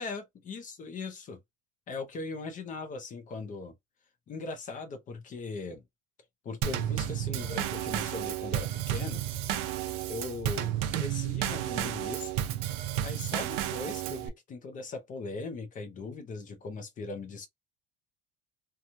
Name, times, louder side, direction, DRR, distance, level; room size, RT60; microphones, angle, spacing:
voice 1, 0.0-1.4 1.9-3.7 4.3-5.8 6.4-9.2 10.1-12.3 13.0-17.5, left 3 dB, 20° left, 0.5 m, -39 dB
Drum kit / Snare drum / Bass drum, 6.6-14.3, right 11 dB, 60° right, 0.6 m, -32 dB
2.9 x 2.2 x 2.5 m
cardioid pair, 175°, 36 cm